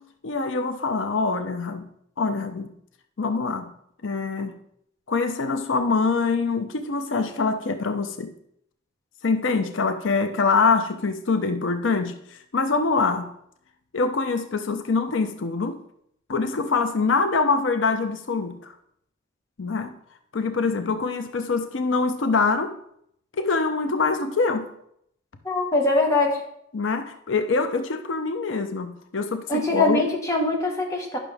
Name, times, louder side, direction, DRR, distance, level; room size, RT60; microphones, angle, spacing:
voice 1, 0.0-1.9 2.2-2.7 3.2-3.7 4.0-4.5 5.1-8.3 9.2-13.3 13.9-15.8 16.3-18.7 19.6-19.9 20.3-22.8 23.4-24.7 26.7-30.0, left 4 dB, 85° left, 8 dB, 0.6 m, -24 dB
voice 2, 25.4-26.4 29.5-31.2, left 2 dB, 15° left, -1 dB, 1.4 m, -23 dB
11.0 x 6.1 x 3.5 m, 0.73 s
head